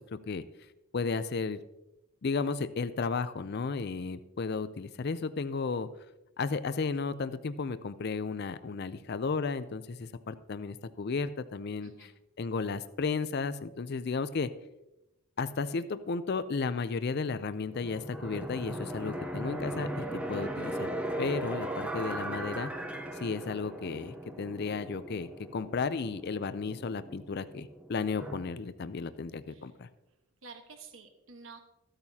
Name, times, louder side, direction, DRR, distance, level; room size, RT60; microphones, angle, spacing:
voice 1, 0.1-0.4 0.9-1.6 2.2-5.9 6.4-12.1 12.4-14.5 15.4-20.9 21.2-22.7 23.1-29.9, left 4 dB, 45° left, 13 dB, 0.4 m, -34 dB
sound 1, 17.7-28.4, right 1 dB, 5° right, 0.6 m, -38 dB
voice 2, 30.4-31.6, right 4 dB, 65° right, 6 dB, 1.2 m, -50 dB
14.5 x 8.8 x 2.8 m, 0.93 s
head